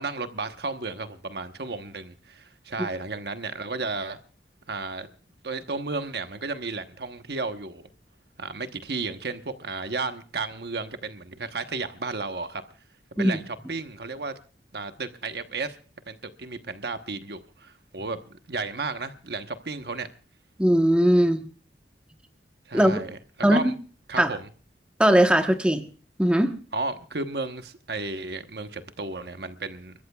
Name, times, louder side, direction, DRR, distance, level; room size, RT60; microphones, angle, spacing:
voice 1, 0.0-4.2 4.7-5.1 5.4-7.8 8.4-12.6 13.1-14.3 14.7-15.8 16.1-18.2 18.5-20.1 22.7-23.1 23.5-23.7 24.1-24.5 26.7-29.9, right 3 dB, 65° right, 1.1 m, -33 dB
voice 2, 20.6-21.4 22.7-23.0 23.4-23.7 24.2-24.3 25.0-25.8 26.2-26.5, equal, 5° right, 1.1 m, -19 dB
30.0 x 14.0 x 2.3 m
head